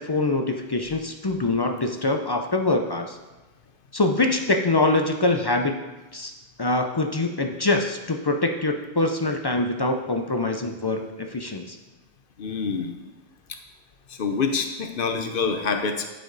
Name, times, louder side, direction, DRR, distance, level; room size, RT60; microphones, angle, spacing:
voice 1, 0.0-3.2 3.9-5.8 6.1-6.3 6.6-11.8, left 2 dB, 40° left, 4 dB, 0.3 m, -24 dB
voice 2, 12.4-12.9 14.1-16.1, left 5 dB, 60° left, 6 dB, 0.9 m, -26 dB
11.0 x 4.9 x 3.9 m, 1.1 s
omnidirectional pair, 1.1 m